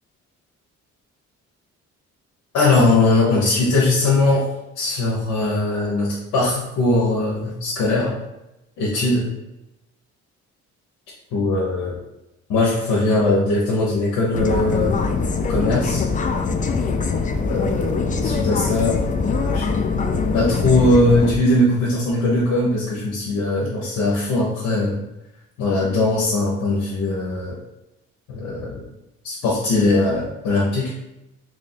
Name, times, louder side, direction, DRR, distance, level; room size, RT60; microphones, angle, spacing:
voice 1, 2.5-4.5 4.7-8.2 8.8-9.3 11.3-11.9 12.5-15.0 15.5-16.0 17.5-19.0 19.3-19.7 20.3-25.0 25.6-27.6 28.3-28.8 29.2-30.9, left 2 dB, 85° left, -5 dB, 0.9 m, -20 dB
sound 1, 14.3-21.4, left 4 dB, 25° left, 0.3 m, -22 dB
3.0 x 2.6 x 4.2 m, 0.94 s
cardioid pair, 90°, 30 cm